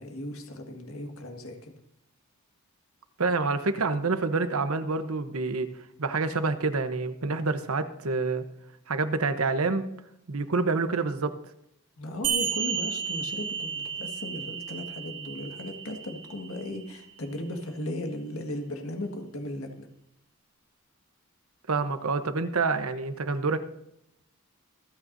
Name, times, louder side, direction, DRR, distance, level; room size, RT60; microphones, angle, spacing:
voice 1, 0.0-1.8 12.0-19.9, left 1 dB, 80° left, 4 dB, 1.8 m, -36 dB
voice 2, 3.2-5.7 6.0-8.5 8.9-9.9 10.3-11.4 21.7-23.6, right 3 dB, 90° right, 10 dB, 1.0 m, -27 dB
sound 1, 12.2-17.3, right 7 dB, 60° right, 2.9 m, -33 dB
26.0 x 9.0 x 2.7 m, 0.79 s
head